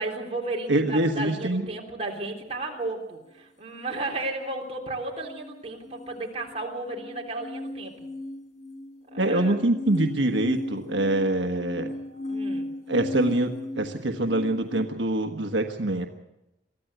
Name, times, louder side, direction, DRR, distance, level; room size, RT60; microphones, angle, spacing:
voice 1, 0.0-8.1 9.1-9.6 12.3-12.7, right 2 dB, 35° right, 0 dB, 3.7 m, -33 dB
voice 2, 0.7-1.6 9.2-11.9 12.9-16.1, right 1 dB, 85° right, 5 dB, 1.4 m, -25 dB
sound 1, 5.2-14.9, left 1 dB, 35° left, 2.3 m, -36 dB
23.5 x 14.5 x 8.0 m, 0.93 s
head